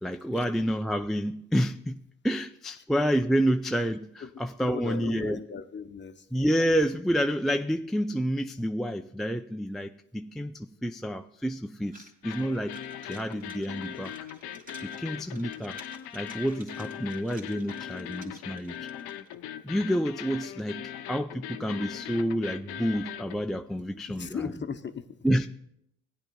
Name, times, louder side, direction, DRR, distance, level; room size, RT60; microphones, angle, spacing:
voice 1, 0.0-5.4 6.3-14.2 14.8-15.8 16.1-18.9 19.6-24.3 25.2-25.5, equal, ahead, 0.4 m, -29 dB
voice 2, 4.6-6.3 24.1-25.1, left 6 dB, 30° left, 0.8 m, -37 dB
sound 1, 11.9-19.4, right 1 dB, 20° right, 2.4 m, -53 dB
sound 2, 12.2-23.4, left 10 dB, 75° left, 0.7 m, -40 dB
16.0 x 10.0 x 2.3 m
supercardioid pair, 60°, 38 cm